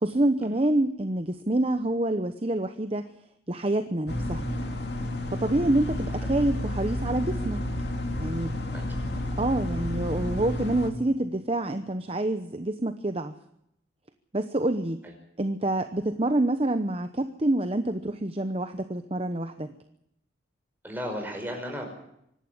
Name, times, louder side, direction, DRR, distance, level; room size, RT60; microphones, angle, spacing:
voice 1, 0.0-3.1 3.5-4.5 5.3-7.6 8.2-8.5 9.4-13.3 14.3-15.0 15.4-19.7, right 1 dB, 30° right, 9 dB, 0.9 m, -27 dB
sound 1, 4.1-10.9, left 1 dB, 60° left, 2.7 m, -31 dB
voice 2, 20.8-21.9, equal, 10° right, 2 dB, 5.7 m, -35 dB
25.0 x 11.5 x 9.6 m, 0.76 s
head